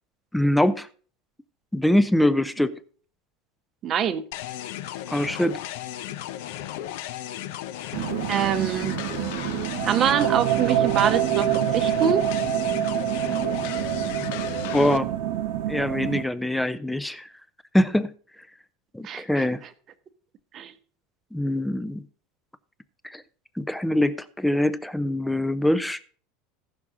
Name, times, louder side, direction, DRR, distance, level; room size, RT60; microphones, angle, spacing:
voice 1, 0.3-0.9 1.7-2.8 5.1-5.6 14.7-15.1 15.7-17.3 17.7-18.1 18.9-19.6 21.3-22.0 23.0-23.2 23.6-26.0, left 1 dB, 5° left, 0.4 m, -23 dB
voice 2, 3.8-4.2 8.3-9.0 9.8-12.2 19.0-19.5 20.5-20.7, right 8 dB, 25° right, 0.8 m, -25 dB
sound 1, 4.3-15.0, left 12 dB, 65° left, 0.6 m, -35 dB
sound 2, 7.9-16.2, right 11 dB, 65° right, 0.9 m, -26 dB
16.0 x 6.0 x 3.6 m
supercardioid pair, 170°, 0 cm